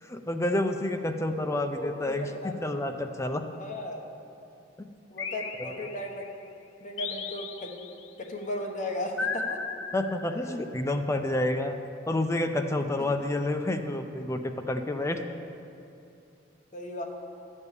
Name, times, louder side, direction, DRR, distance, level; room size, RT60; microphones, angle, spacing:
voice 1, 0.0-3.5 9.9-11.8 12.1-15.2, left 1 dB, 15° left, 6 dB, 0.4 m, -29 dB
voice 2, 1.7-2.6 3.6-4.1 5.1-6.3 6.8-7.7 8.2-9.6 10.5-10.6 15.1-15.3 16.7-17.1, left 1 dB, 40° left, 1 dB, 1.1 m, -36 dB
sound 1, 5.2-6.3 7.0-8.1 9.2-10.6, left 4 dB, 75° left, 0.7 m, -36 dB
11.0 x 5.4 x 8.1 m, 2.6 s
head